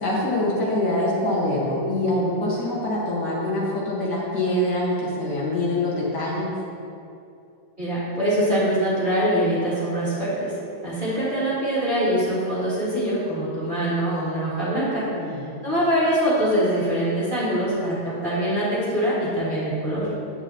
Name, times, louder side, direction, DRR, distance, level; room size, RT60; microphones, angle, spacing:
voice 1, 0.0-6.5 15.1-15.6, left 1 dB, 55° left, -6 dB, 2.1 m, -24 dB
voice 2, 7.8-10.5 10.8-15.1 15.6-20.1, equal, 25° right, -9 dB, 2.1 m, -23 dB
9.5 x 8.5 x 3.0 m, 2.5 s
omnidirectional pair, 2.2 m